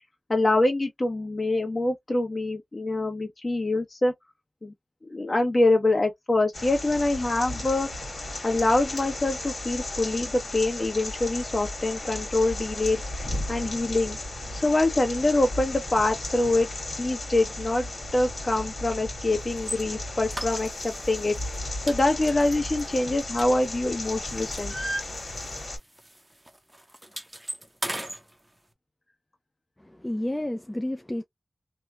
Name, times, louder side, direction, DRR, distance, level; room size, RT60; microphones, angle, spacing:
voice 1, 0.3-4.1 4.6-4.7 5.0-7.9 8.4-14.2 14.5-16.7 17.0-17.9 18.1-21.4 21.9-24.7, left 2 dB, 40° left, 1.1 m, -25 dB
sound 1, 6.5-25.8, left 2 dB, 70° left, 1.6 m, -35 dB
sound 2, 19.6-19.8 20.3-21.0 21.4-21.6 21.9-23.9 24.3-25.7 26.0-26.2 26.5-28.2, right 1 dB, 15° right, 0.6 m, -36 dB
voice 2, 29.8-31.2, left 1 dB, 15° left, 0.3 m, -31 dB
3.0 x 2.2 x 2.4 m
wide cardioid pair, 65°, 0 cm